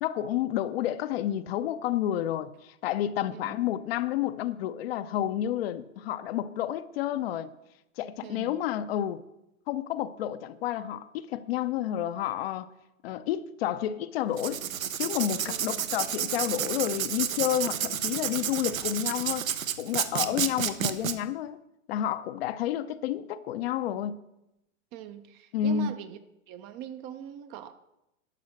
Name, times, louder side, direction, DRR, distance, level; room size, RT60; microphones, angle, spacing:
voice 1, 0.0-7.5 8.0-9.2 9.7-12.7 13.0-14.6 15.0-19.5 19.8-21.6 21.9-24.2 25.5-26.0, left 11 dB, 50° left, 0.6 m, -30 dB
voice 2, 3.3-3.7 8.2-8.6 15.5-15.8 20.1-20.4 24.9-26.2 26.5-27.7, right 11 dB, 25° right, 0.5 m, -42 dB
Writing, 14.3-21.1, right 9 dB, 80° right, 1.0 m, -31 dB
11.5 x 5.5 x 6.4 m
hypercardioid pair, 125°, 40 cm